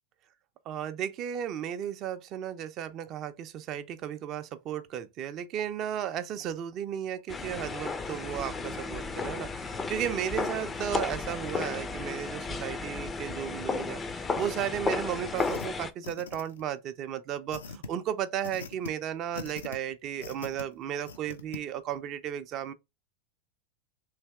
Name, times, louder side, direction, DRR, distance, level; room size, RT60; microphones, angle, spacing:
voice 1, 0.7-22.7, right 10 dB, 40° right, 0.4 m, -34 dB
sound 1, 7.3-15.9, left 4 dB, 20° left, 0.4 m, -34 dB
sound 2, 15.4-15.7 16.0-16.7 17.5-17.9 18.4-18.9 19.3-19.8 20.2-20.6 21.1-21.6, left 4 dB, 80° left, 0.5 m, -41 dB
3.2 x 2.8 x 3.4 m
hypercardioid pair, 95°, 0 cm